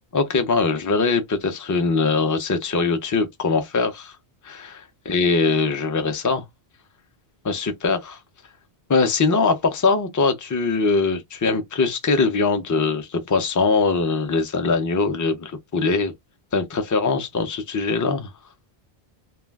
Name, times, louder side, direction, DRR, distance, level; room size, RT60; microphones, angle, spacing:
voice 1, 0.1-4.1 4.4-6.4 7.4-8.2 8.9-16.1 16.5-18.3, left 4 dB, 25° left, 0.4 m, -22 dB
2.2 x 2.2 x 3.3 m
omnidirectional pair, 1.1 m